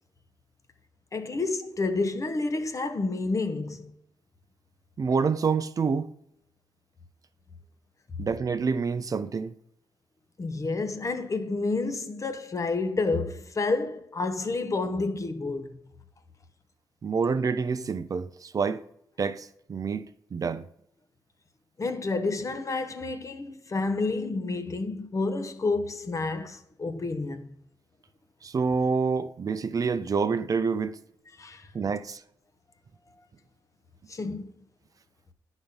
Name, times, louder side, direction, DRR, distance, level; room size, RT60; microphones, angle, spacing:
voice 1, 1.1-3.9 10.4-15.7 21.8-27.5 31.4-31.7 34.1-34.5, left 3 dB, 40° left, 0.9 m, -29 dB
voice 2, 5.0-6.1 8.2-9.5 17.0-18.8 19.2-20.1 20.3-20.7 28.4-31.0 31.7-32.2, right 5 dB, 45° right, 0.5 m, -27 dB
10.0 x 4.1 x 5.2 m
supercardioid pair, 45°, 8 cm